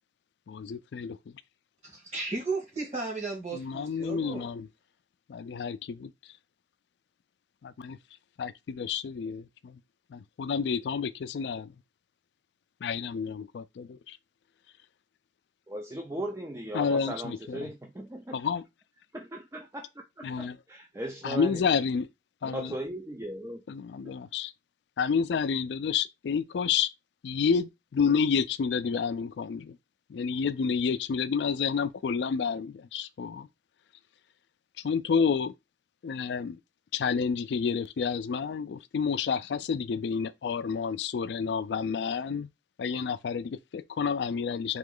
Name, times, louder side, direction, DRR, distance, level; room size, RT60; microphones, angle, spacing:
voice 1, 0.5-1.1 3.5-4.7 5.3-6.1 7.6-8.0 8.4-9.8 10.1-11.7 12.8-14.2 16.7-17.7 18.3-18.6 20.2-20.6 21.2-22.1 22.4-22.7 23.7-24.5 25.0-26.9 27.2-29.8 30.1-33.5 34.8-35.5 36.0-36.6 36.9-42.5 42.8-44.8, left 6 dB, 80° left, 0.3 m, -29 dB
voice 2, 1.8-4.5, right 3 dB, 40° right, 1.9 m, -35 dB
voice 3, 15.7-18.4 19.1-21.6 22.4-23.6, right 1 dB, 15° right, 0.4 m, -38 dB
3.7 x 3.0 x 3.7 m
head